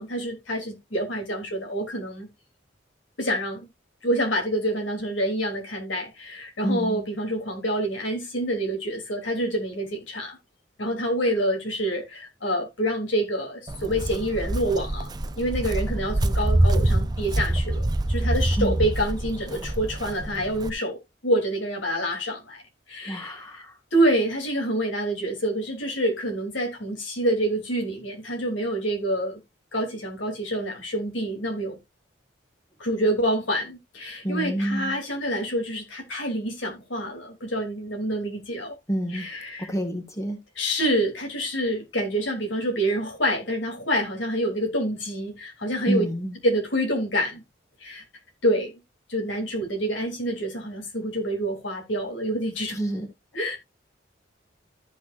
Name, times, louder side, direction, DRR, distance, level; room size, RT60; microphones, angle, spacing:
voice 1, 0.0-2.3 3.2-3.7 4.0-10.4 10.8-15.1 15.4-22.6 22.9-23.7 23.9-29.4 29.7-31.8 32.8-38.8 39.1-39.7 40.6-46.0 46.4-47.4 47.8-48.0 48.4-48.7 49.1-52.8 53.3-53.6, right 1 dB, 85° left, 3.5 m, -27 dB
voice 2, 6.6-7.0 18.6-18.8 23.1-23.8 34.2-35.0 38.9-39.3 39.6-40.4 45.9-46.3 52.7-53.1, right 1 dB, 15° left, 1.8 m, -28 dB
Walk footsteps, 13.7-20.7, right 1 dB, 20° right, 0.6 m, -25 dB
14.0 x 6.0 x 2.6 m
head